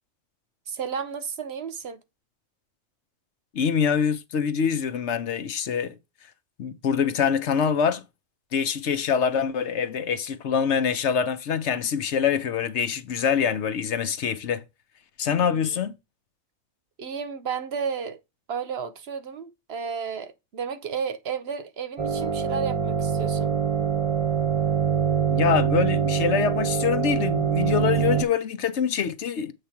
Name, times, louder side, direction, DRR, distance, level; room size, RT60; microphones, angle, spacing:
voice 1, 0.7-2.0 15.3-15.8 17.0-18.2 18.5-23.5, right 6 dB, 60° right, 0.9 m, -33 dB
voice 2, 3.5-6.0 6.6-8.0 8.5-14.6 15.2-15.9 25.3-29.5, left 7 dB, 65° left, 1.0 m, -25 dB
sound 1, 22.0-28.2, right 8 dB, 30° right, 0.9 m, -24 dB
7.8 x 3.3 x 5.8 m
omnidirectional pair, 1.3 m